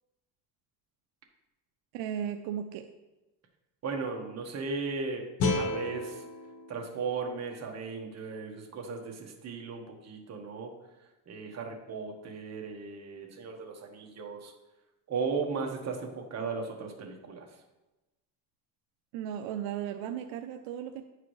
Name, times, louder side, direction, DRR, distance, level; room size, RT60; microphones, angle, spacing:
voice 1, 1.9-2.9 19.1-21.0, right 9 dB, 75° right, 6 dB, 0.6 m, -35 dB
voice 2, 3.8-5.2 5.6-6.2 6.7-10.7 11.3-14.5 15.1-17.5, right 4 dB, 35° right, 1 dB, 1.3 m, -36 dB
sound 1, 5.4-8.5, left 3 dB, 50° left, 1.1 m, -34 dB
10.0 x 4.8 x 3.2 m, 1.0 s
cardioid pair, 115°, 45 cm